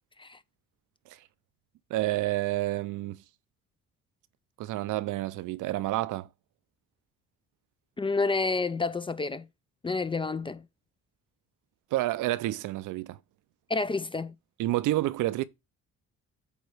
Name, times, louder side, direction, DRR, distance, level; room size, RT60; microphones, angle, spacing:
voice 1, 1.9-3.2 4.6-6.3 11.9-13.2 14.6-15.4, right 16 dB, 85° right, 0.5 m, -29 dB
voice 2, 8.0-9.5 9.8-10.6 13.7-14.3, left 3 dB, 20° left, 0.3 m, -29 dB
8.0 x 3.0 x 4.9 m
cardioid pair, 90°, 30 cm